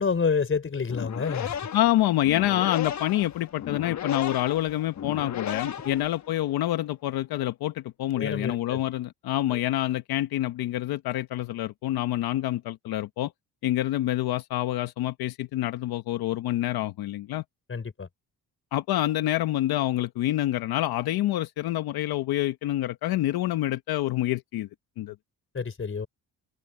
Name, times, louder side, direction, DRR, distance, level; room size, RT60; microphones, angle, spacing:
voice 1, 0.0-1.6 5.8-6.0 8.2-8.8 9.5-9.6 17.7-18.1 25.5-26.1, left 5 dB, 35° left, 4.8 m, -28 dB
sound 1, 0.8-6.5, left 9 dB, 50° left, 1.2 m, -35 dB
voice 2, 1.7-13.3 13.6-17.4 18.7-24.7 25.0-25.1, left 14 dB, 80° left, 1.2 m, -27 dB
open air
cardioid pair, 85°, 36 cm